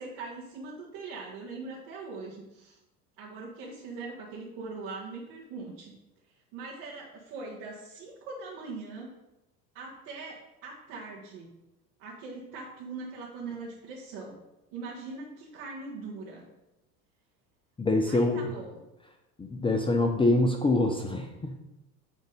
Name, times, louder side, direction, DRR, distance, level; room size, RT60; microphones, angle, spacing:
voice 1, 0.0-2.8 3.2-5.9 6.3-9.1 9.7-11.6 12.0-14.4 14.7-16.5 18.1-18.9 20.2-20.4, right 3 dB, 55° right, -5 dB, 1.8 m, -41 dB
voice 2, 17.8-18.4 19.4-21.6, left 2 dB, 10° left, 3 dB, 0.7 m, -25 dB
9.2 x 3.7 x 5.3 m, 0.94 s
hypercardioid pair, 80°, 48 cm